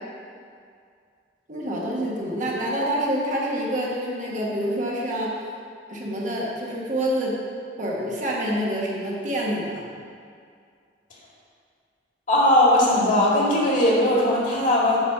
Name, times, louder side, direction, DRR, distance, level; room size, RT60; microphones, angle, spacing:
voice 1, 1.5-5.3 5.9-7.4 7.8-9.8, equal, 45° right, -4 dB, 1.5 m, -27 dB
voice 2, 12.3-15.0, left 1 dB, 45° left, -4 dB, 2.0 m, -19 dB
8.7 x 4.2 x 6.7 m, 2.2 s
head